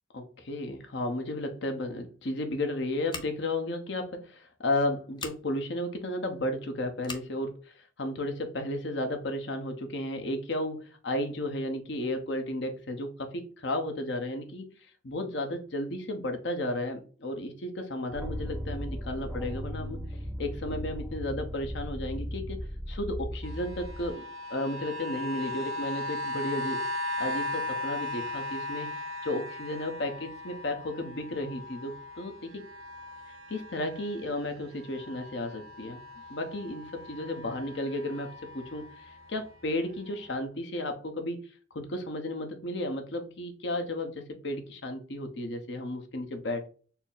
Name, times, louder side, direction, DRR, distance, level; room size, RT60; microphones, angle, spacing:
voice 1, 0.1-14.7 15.0-20.1 20.4-22.6 22.9-24.2 24.5-26.8 27.2-28.9 29.2-32.6 33.5-36.0 36.3-46.7, left 1 dB, 60° left, 0.7 m, -33 dB
Scissors, 3.1-3.6 5.1-5.4 7.0-7.3, left 5 dB, 20° left, 0.4 m, -40 dB
sound 1, 18.1-24.1, equal, 5° right, 0.8 m, -37 dB
sound 2, 23.4-34.5 34.8-39.4 40.1-40.2, left 2 dB, 85° right, 0.6 m, -38 dB
4.3 x 2.0 x 3.7 m
head